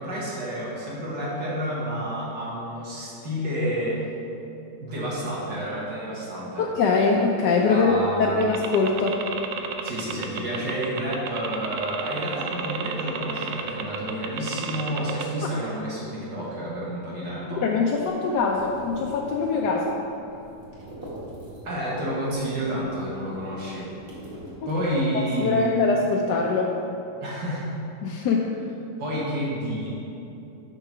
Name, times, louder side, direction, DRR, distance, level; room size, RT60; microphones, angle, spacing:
voice 1, 0.0-4.0 4.8-6.6 7.7-8.5 9.8-17.6 21.6-23.9 24.7-25.8 27.2-27.7 29.0-29.9, equal, 65° right, -6 dB, 2.3 m, -29 dB
voice 2, 6.6-9.2 17.6-19.9 25.1-26.7 28.0-28.5, left 4 dB, 70° left, -1 dB, 1.2 m, -23 dB
sound 1, 8.4-15.2, right 7 dB, 80° right, 1.4 m, -32 dB
sound 2, 18.0-21.9 22.2-25.3, right 1 dB, 45° right, 2.5 m, -43 dB
9.9 x 4.7 x 6.0 m, 3.0 s
omnidirectional pair, 2.0 m